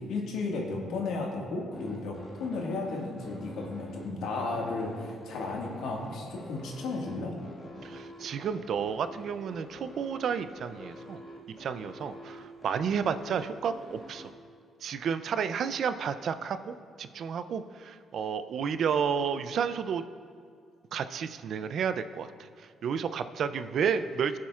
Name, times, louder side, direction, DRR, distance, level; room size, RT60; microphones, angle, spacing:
voice 1, 0.1-7.3, left 3 dB, 80° left, -1 dB, 1.7 m, -34 dB
sound 1, 1.7-14.3, equal, 30° left, 1.8 m, -47 dB
voice 2, 7.8-11.2 11.6-14.3 14.8-20.0 20.9-24.4, right 7 dB, 65° right, 11 dB, 0.4 m, -31 dB
17.5 x 7.3 x 2.4 m, 2.2 s
cardioid pair, 90°, 0 cm